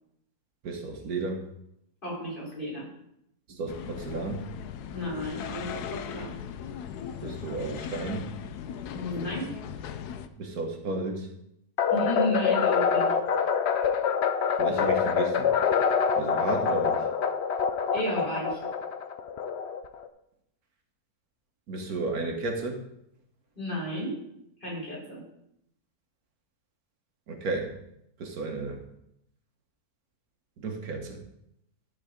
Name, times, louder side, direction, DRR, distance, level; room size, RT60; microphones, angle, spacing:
voice 1, 0.6-1.4 3.5-4.5 7.2-8.3 10.4-11.3 14.6-15.5 16.1-17.0 21.7-22.8 27.3-27.7 28.2-28.8 30.6-31.2, right 3 dB, 70° right, 3 dB, 1.6 m, -33 dB
voice 2, 2.0-2.9 4.9-6.4 8.9-9.5 11.9-13.1 17.9-18.6 23.6-24.2 24.6-25.2, equal, 30° left, -6 dB, 4.4 m, -32 dB
sound 1, 3.7-10.3, left 8 dB, 90° left, 1.2 m, -38 dB
sound 2, 11.8-20.1, left 6 dB, 60° left, 0.7 m, -26 dB
12.5 x 4.7 x 5.0 m, 0.78 s
omnidirectional pair, 1.7 m